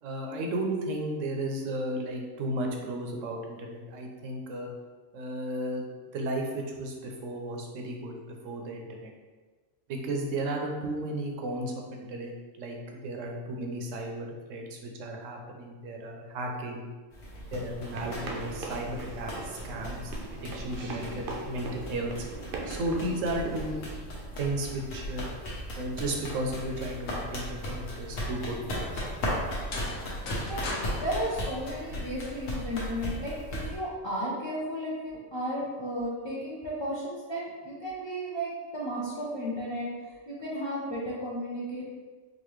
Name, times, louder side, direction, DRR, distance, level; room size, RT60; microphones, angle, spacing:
voice 1, 0.0-4.7 5.1-5.9 6.1-8.2 8.4-9.1 9.9-16.9 17.5-22.1 22.7-23.8 24.4-25.3 25.7-29.0, right 1 dB, 80° right, 1 dB, 1.0 m, -34 dB
sound 1, 17.1-33.8, equal, 85° left, 1.2 m, -37 dB
sound 2, 17.8-23.8, right 2 dB, 60° right, 0.6 m, -40 dB
sound 3, 29.7-32.4, left 2 dB, 70° left, 1.0 m, -39 dB
voice 2, 30.9-41.8, equal, 40° left, -7 dB, 0.4 m, -34 dB
4.0 x 2.6 x 3.0 m, 1.4 s
omnidirectional pair, 1.3 m